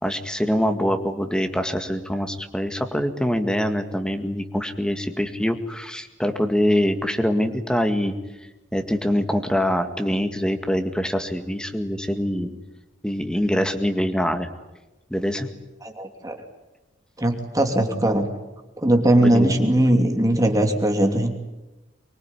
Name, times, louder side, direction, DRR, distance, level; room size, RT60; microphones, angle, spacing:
voice 1, 0.0-8.1 8.7-12.5 13.0-14.5 15.1-15.5 19.2-19.5, equal, 5° left, 6 dB, 2.0 m, -24 dB
voice 2, 15.8-16.4 17.2-18.3 18.8-21.3, right 1 dB, 20° right, 4 dB, 2.9 m, -20 dB
24.5 x 21.5 x 10.0 m, 1.0 s
head